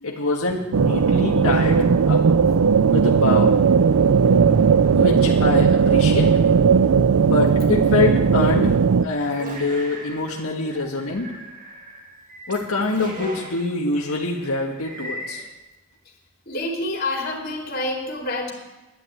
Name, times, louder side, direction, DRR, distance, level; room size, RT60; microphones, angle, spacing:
voice 1, 0.0-2.3 2.9-3.5 4.9-6.4 7.2-11.4 12.5-15.4, left 3 dB, 80° left, -1 dB, 1.7 m, -25 dB
sound 1, 0.7-9.1, right 6 dB, 80° right, 0.4 m, -17 dB
sound 2, 9.2-15.5, right 1 dB, 35° right, 2.6 m, -38 dB
voice 2, 16.5-18.5, left 2 dB, 45° left, 0 dB, 3.7 m, -27 dB
11.5 x 11.0 x 9.1 m, 1.1 s
head